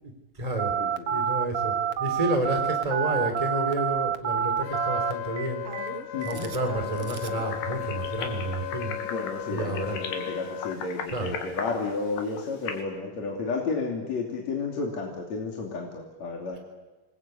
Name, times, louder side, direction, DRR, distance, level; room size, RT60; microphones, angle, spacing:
voice 1, 0.0-0.8 1.1-5.6 6.2-9.0 9.5-10.0 11.1-11.3, right 1 dB, 10° right, 4 dB, 3.8 m, -30 dB
Telephone, 0.6-7.4, right 8 dB, 60° right, 1.6 m, -28 dB
voice 2, 0.8-1.2 6.1-6.5 9.1-16.6, left 4 dB, 45° left, 0 dB, 3.8 m, -32 dB
Wind instrument woodwind instrument, 4.6-10.8, left 14 dB, 70° left, 2.8 m, -36 dB
sound 1, 7.2-12.8, left 6 dB, 85° left, 4.4 m, -38 dB
27.5 x 21.0 x 8.5 m, 1.2 s
omnidirectional pair, 4.5 m